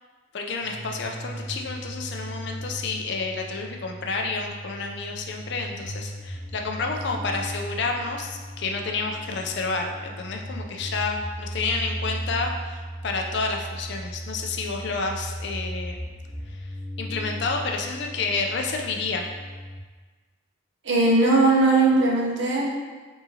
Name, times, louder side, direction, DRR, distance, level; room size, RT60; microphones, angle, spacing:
voice 1, 0.3-16.0 16.5-16.7 17.0-19.3, left 3 dB, 55° left, 2 dB, 0.4 m, -30 dB
sound 1, 0.6-19.8, equal, 20° right, 0.4 m, -36 dB
voice 2, 20.8-22.7, right 2 dB, 65° right, -3 dB, 0.8 m, -19 dB
4.9 x 2.8 x 2.8 m, 1.4 s
head